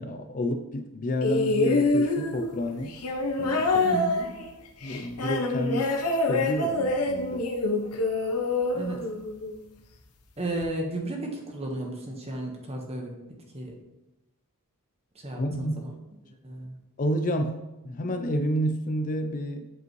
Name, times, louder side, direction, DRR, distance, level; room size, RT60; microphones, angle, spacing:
voice 1, 0.0-3.0 3.4-4.0 4.8-5.9 6.2-7.5 15.3-15.8 17.0-19.7, equal, 35° left, 7 dB, 0.4 m, -30 dB
sound 1, 1.2-9.6 10.6-10.7, left 2 dB, 85° left, 0.9 m, -26 dB
voice 2, 3.8-4.3 8.7-9.0 10.4-13.1 13.5-13.7 15.1-15.9 16.4-16.7, right 2 dB, 30° right, 1 dB, 1.2 m, -33 dB
7.9 x 5.1 x 3.1 m, 1.0 s
head